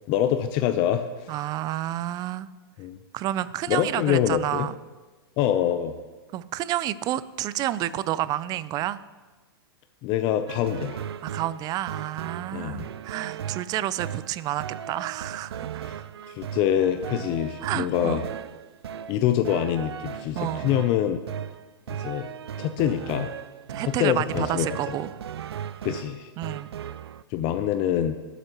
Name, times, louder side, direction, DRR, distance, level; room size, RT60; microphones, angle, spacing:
voice 1, 0.1-1.3 2.8-3.0 3.7-4.7 5.4-5.9 10.0-11.0 12.5-12.9 15.8-15.9 16.3-18.2 19.1-21.2 22.0-22.3 22.6-23.3 23.8-25.0 25.8-26.3 27.3-28.1, left 10 dB, 40° left, 8 dB, 0.6 m, -25 dB
voice 2, 1.3-2.5 3.1-4.7 6.3-9.0 11.2-15.8 17.6-18.2 20.4-20.7 23.7-25.1 26.4-26.7, right 13 dB, 30° right, 16 dB, 0.4 m, -30 dB
sound 1, 10.5-27.2, right 9 dB, 85° right, 0.4 m, -37 dB
19.0 x 8.1 x 3.0 m, 1.3 s
hypercardioid pair, 125°, 13 cm